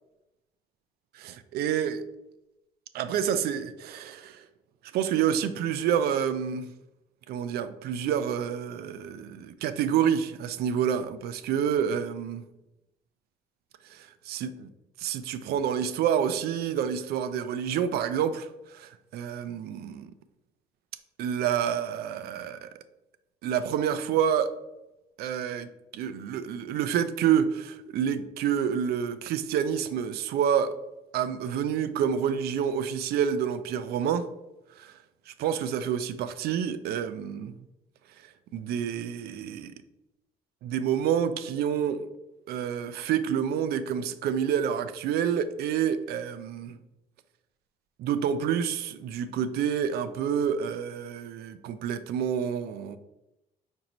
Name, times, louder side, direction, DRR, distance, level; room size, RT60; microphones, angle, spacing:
voice 1, 1.1-2.0 2.9-4.5 4.9-6.8 7.3-12.5 13.9-14.7 15.0-20.1 21.2-22.7 23.4-24.5 25.2-30.8 31.1-34.3 34.8-35.0 35.3-37.6 38.5-39.7 40.6-42.0 42.5-46.8 48.0-53.0, right 8 dB, 70° right, 0.4 m, -28 dB
5.1 x 2.6 x 2.9 m
cardioid pair, 110°, 17 cm